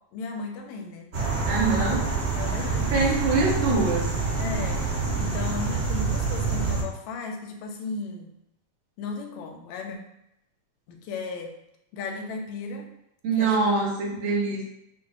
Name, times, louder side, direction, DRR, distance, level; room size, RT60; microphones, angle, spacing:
voice 1, 0.1-1.1 1.6-2.0 2.3-3.1 4.4-4.9 5.2-8.3 9.0-10.0 10.9-11.5 11.9-12.9 13.3-13.9, left 4 dB, 80° left, 3 dB, 1.9 m, -35 dB
sound 1, 1.1-6.8, right 4 dB, 45° right, 1.6 m, -26 dB
voice 2, 1.5-2.0 2.9-4.1 13.2-14.7, right 3 dB, 80° right, -3 dB, 2.3 m, -24 dB
7.4 x 2.6 x 2.4 m, 0.80 s
omnidirectional pair, 3.4 m